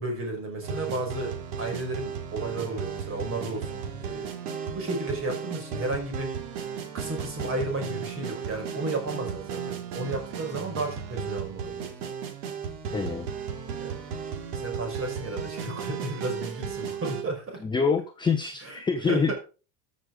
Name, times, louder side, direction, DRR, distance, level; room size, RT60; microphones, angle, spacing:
voice 1, 0.0-1.3 1.6-4.3 4.7-6.4 6.9-11.9 13.8-14.0 14.5-17.6 18.6-18.8 19.1-19.3, right 2 dB, 25° right, 2 dB, 5.4 m, -33 dB
sound 1, 0.6-17.2, right 7 dB, 55° right, 3.4 m, -35 dB
voice 2, 12.9-13.3 17.6-19.3, left 5 dB, 10° left, 5 dB, 0.7 m, -26 dB
14.0 x 6.7 x 5.2 m, 0.34 s
supercardioid pair, 155°, 49 cm